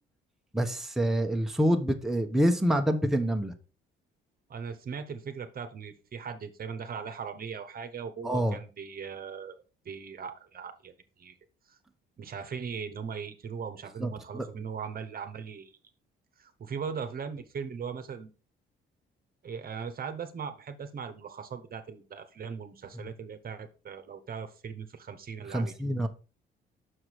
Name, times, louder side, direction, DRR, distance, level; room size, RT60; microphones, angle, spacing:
voice 1, 0.5-3.5 8.2-8.6 14.0-14.1 14.3-14.5 25.5-26.1, equal, ahead, 0.9 m, -26 dB
voice 2, 4.5-11.4 11.7-11.8 12.2-15.7 16.4-18.3 19.4-26.0, right 6 dB, 50° right, 1.0 m, -39 dB
6.3 x 4.7 x 4.6 m
cardioid pair, 90°, 20 cm